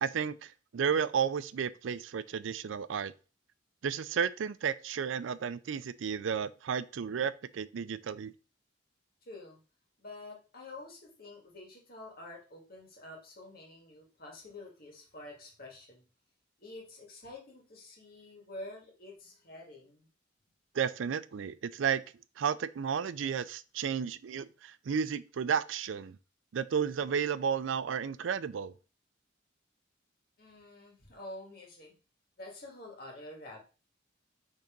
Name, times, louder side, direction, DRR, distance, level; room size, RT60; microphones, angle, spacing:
voice 1, 0.0-3.1 3.8-8.3 20.7-22.0 22.4-26.2 26.5-28.7, right 7 dB, 85° right, 0.4 m, -32 dB
voice 2, 9.2-9.6 10.0-16.0 16.6-20.1 30.4-32.0 32.4-33.6, left 2 dB, 50° left, 2.3 m, -48 dB
5.3 x 3.8 x 5.2 m
head